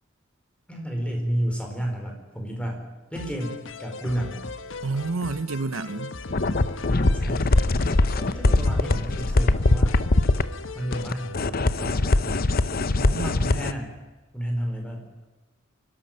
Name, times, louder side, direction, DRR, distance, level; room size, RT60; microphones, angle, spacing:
voice 1, 0.7-4.4 6.9-10.0 10.7-12.5 13.0-13.9 14.3-15.1, equal, 5° left, 4.5 m, -31 dB
sound 1, 3.1-11.4, left 4 dB, 70° left, 1.2 m, -39 dB
voice 2, 4.8-6.2 12.9-13.4, right 3 dB, 85° right, 0.7 m, -29 dB
sound 2, 6.3-10.4 10.9-13.7, left 2 dB, 50° left, 0.8 m, -22 dB
24.0 x 13.0 x 9.3 m
head